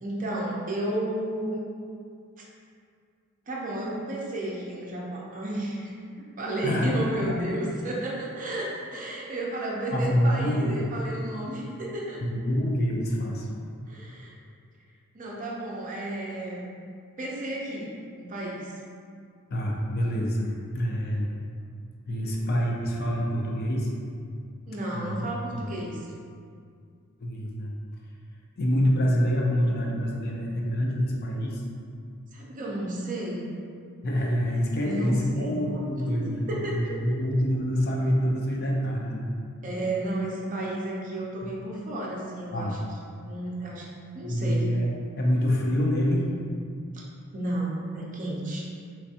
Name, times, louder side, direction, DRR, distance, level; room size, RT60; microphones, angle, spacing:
voice 1, 0.0-1.7 3.5-6.0 6.4-12.2 13.9-14.3 15.1-16.7 17.2-18.7 24.7-26.0 32.3-33.5 34.8-35.6 36.0-37.2 39.6-42.8 43.3-43.9 44.1-44.7 46.9-47.0 47.3-48.7, right 1 dB, 35° right, -4 dB, 0.5 m, -32 dB
voice 2, 6.6-7.4 9.9-10.9 12.2-13.5 19.5-21.3 22.1-23.9 24.9-25.7 27.2-27.7 28.6-31.6 34.0-39.3 42.5-42.8 44.2-46.3, equal, 45° left, -1 dB, 0.4 m, -26 dB
3.4 x 3.2 x 2.8 m, 2.3 s
head